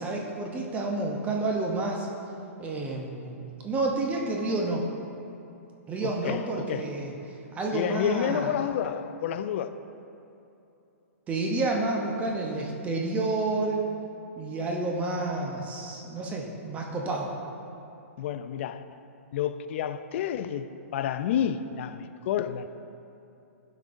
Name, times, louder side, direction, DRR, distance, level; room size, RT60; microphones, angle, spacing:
voice 1, 0.0-2.1 2.6-4.8 5.9-7.1 7.5-8.6 11.3-13.8 14.4-17.3, right 2 dB, 15° right, 0 dB, 0.6 m, -29 dB
voice 2, 6.0-6.4 6.7-6.8 7.7-9.8 18.2-18.8 19.3-22.7, left 9 dB, 55° left, 11 dB, 0.3 m, -30 dB
11.5 x 5.1 x 2.6 m, 2.8 s
hypercardioid pair, 145°, 8 cm